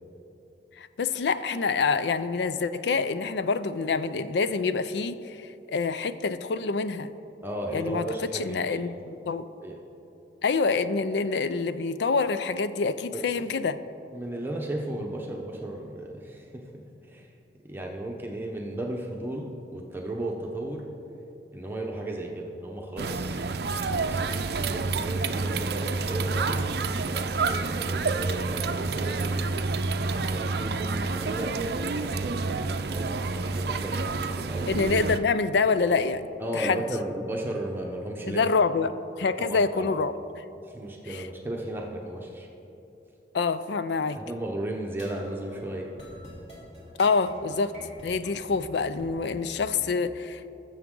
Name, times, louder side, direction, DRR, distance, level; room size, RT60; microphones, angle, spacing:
voice 1, 0.8-7.1 7.7-8.0 8.3-9.4 10.4-13.8 34.7-36.3 36.5-36.8 38.3-38.9 39.2-40.1 41.1-41.3 43.3-44.2 47.0-47.7 48.0-50.5, left 4 dB, 75° left, 13 dB, 0.4 m, -26 dB
voice 2, 7.4-8.9 9.6-9.8 13.1-13.4 14.1-16.6 17.0-17.3 17.6-20.8 21.5-23.4 23.7-29.6 30.3-34.7 36.4-38.5 39.4-40.0 40.6-42.5 44.1-45.9, right 1 dB, 10° right, -1 dB, 0.8 m, -35 dB
sound 1, 23.0-35.2, right 3 dB, 60° right, 0.5 m, -29 dB
sound 2, 44.9-49.9, equal, 35° left, 3.1 m, -46 dB
20.0 x 7.1 x 3.8 m, 2.9 s
head